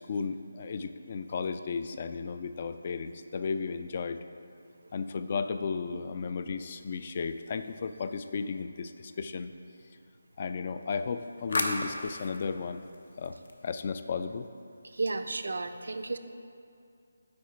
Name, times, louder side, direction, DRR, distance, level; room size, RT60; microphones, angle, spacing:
voice 1, 0.0-4.2 4.9-9.5 10.4-12.8 13.2-13.4 13.6-14.5, left 5 dB, 40° left, 10 dB, 0.3 m, -34 dB
sound 1, 6.7-8.5 10.8-14.0, left 2 dB, 70° left, 0.7 m, -38 dB
voice 2, 14.9-16.2, right 3 dB, 75° right, 8 dB, 0.5 m, -33 dB
8.5 x 4.4 x 4.4 m, 2.5 s
figure-of-eight pair, 160°, 0 cm